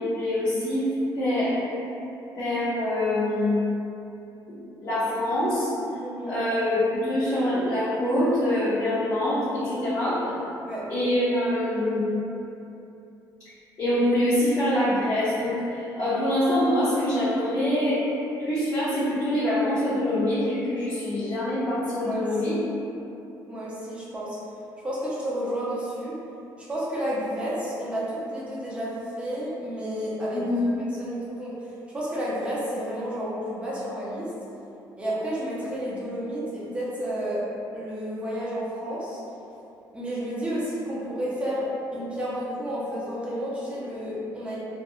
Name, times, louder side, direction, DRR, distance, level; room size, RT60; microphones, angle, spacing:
voice 1, 0.0-1.5 2.3-3.6 4.8-5.7 6.3-10.3 10.9-12.0 13.8-18.0 18.4-22.5 30.3-30.7, left 1 dB, 45° left, -14 dB, 0.8 m, -25 dB
voice 2, 6.0-6.4 10.6-10.8 22.0-22.2 23.5-24.4 24.8-26.2 26.6-30.5 31.0-34.3 35.0-37.5 37.7-39.2 39.9-44.6, equal, 15° right, -8 dB, 0.6 m, -31 dB
2.4 x 2.2 x 2.7 m, 2.8 s
cardioid pair, 155°, 8 cm